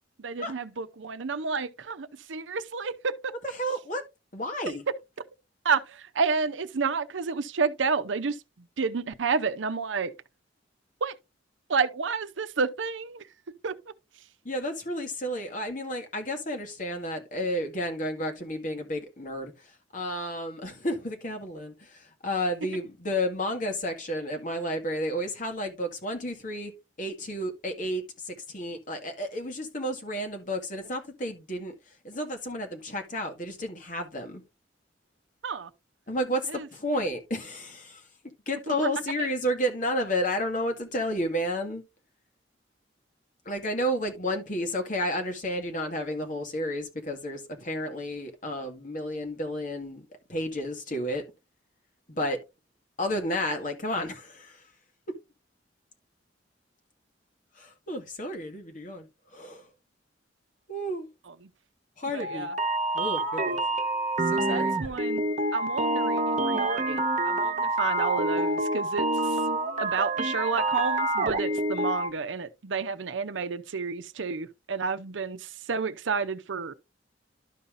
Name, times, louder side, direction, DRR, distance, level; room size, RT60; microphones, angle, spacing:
voice 1, 0.2-3.3 5.6-10.1 11.0-11.2 11.7-13.3 13.6-13.8 35.4-35.7 36.5-36.7 38.7-38.8 39.2-39.3 61.3-61.5 62.1-62.6 64.4-65.2 65.5-69.4 69.8-76.7, right 5 dB, 80° right, 0.7 m, -30 dB
voice 2, 3.6-4.0 4.3-4.8 14.5-19.5 19.9-26.7 27.0-31.7 32.0-34.4 36.1-38.0 38.5-41.8 43.5-51.2 52.1-52.4 53.0-54.6 57.6-59.1 59.3-59.7 60.7-61.1 62.0-62.5 62.9-63.6 64.3-64.7, equal, 45° left, 2.0 m, -31 dB
sound 1, 62.2-72.1, right 2 dB, 40° right, 1.2 m, -27 dB
12.0 x 5.6 x 2.6 m
head